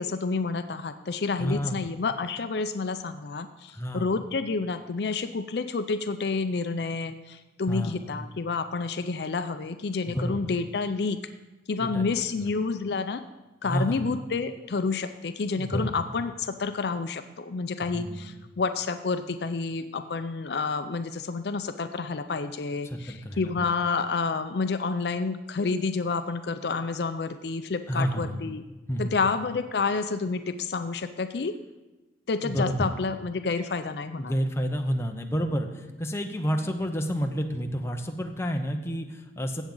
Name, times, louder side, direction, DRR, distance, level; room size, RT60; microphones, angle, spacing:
voice 1, 0.0-11.2 11.7-13.2 13.6-28.6 29.0-31.5 32.3-34.3, left 4 dB, 65° left, 9 dB, 0.5 m, -29 dB
voice 2, 1.4-1.9 3.7-4.1 7.7-8.1 10.1-10.4 11.8-12.5 13.6-14.1 15.6-15.9 17.9-18.1 22.8-23.7 27.9-28.4 28.9-29.1 32.4-32.9 34.2-39.6, equal, 15° left, 4 dB, 0.8 m, -30 dB
16.0 x 7.2 x 3.9 m, 1.1 s
head